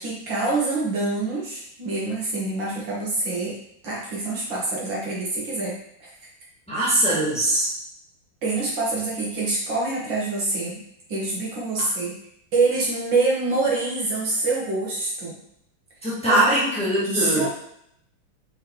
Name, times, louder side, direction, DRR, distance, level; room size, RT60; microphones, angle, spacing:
voice 1, 0.0-3.6 3.8-6.1 6.7-6.8 8.4-10.8 11.1-12.1 12.5-15.4 16.3-16.4 17.1-17.5, right 3 dB, 60° right, -5 dB, 2.0 m, -25 dB
voice 2, 6.7-7.7 11.8-11.9 16.0-17.5, right 1 dB, 5° left, -9 dB, 1.8 m, -22 dB
5.6 x 3.7 x 4.5 m, 0.74 s
omnidirectional pair, 2.4 m